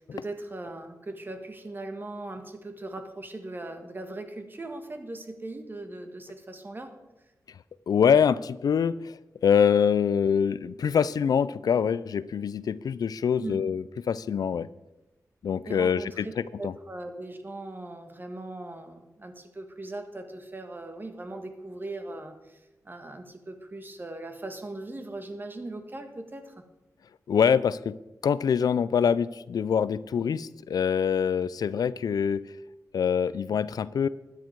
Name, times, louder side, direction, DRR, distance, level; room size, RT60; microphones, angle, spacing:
voice 1, 0.0-6.9 13.4-13.7 15.6-26.6 33.4-33.6, right 2 dB, 30° right, 7 dB, 1.5 m, -39 dB
voice 2, 7.9-14.7 15.4-16.7 27.3-27.9 28.2-32.6 32.9-34.1, left 7 dB, 80° left, 18 dB, 0.4 m, -25 dB
12.5 x 9.6 x 4.6 m, 1.0 s
wide cardioid pair, 75°, 6 cm